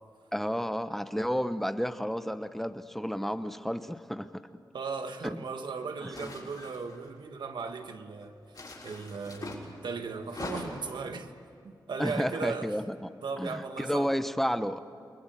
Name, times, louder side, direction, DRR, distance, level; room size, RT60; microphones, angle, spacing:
voice 1, 0.3-4.4 5.3-5.4 6.0-6.1 12.0-13.1 13.4-14.8, equal, 5° left, 1.0 m, -31 dB
voice 2, 4.7-11.3 11.6-12.7 13.2-14.1, right 4 dB, 85° right, 1.7 m, -37 dB
sound 1, 6.1-7.1 8.5-9.6 10.2-10.9, left 2 dB, 55° left, 6.3 m, -41 dB
29.5 x 20.5 x 9.3 m
wide cardioid pair, 80°, 8 cm